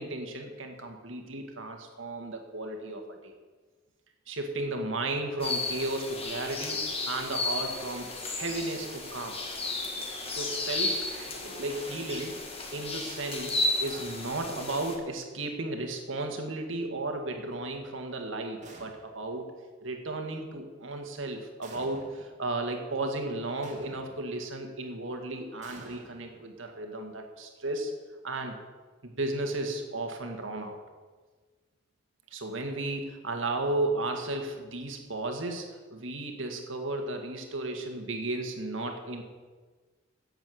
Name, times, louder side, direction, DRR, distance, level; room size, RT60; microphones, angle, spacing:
voice 1, 0.0-3.3 4.3-9.4 10.3-12.4 12.7-19.5 19.8-27.9 28.2-28.6 29.0-30.8 32.3-39.2, right 2 dB, 75° right, 4 dB, 1.9 m, -34 dB
sound 1, 5.4-15.0, left 2 dB, 30° left, 1.7 m, -33 dB
sound 2, 18.6-19.4 21.6-22.4 23.6-24.4 25.6-26.8, right 2 dB, 40° right, 2.0 m, -51 dB
10.5 x 8.0 x 7.9 m, 1.4 s
head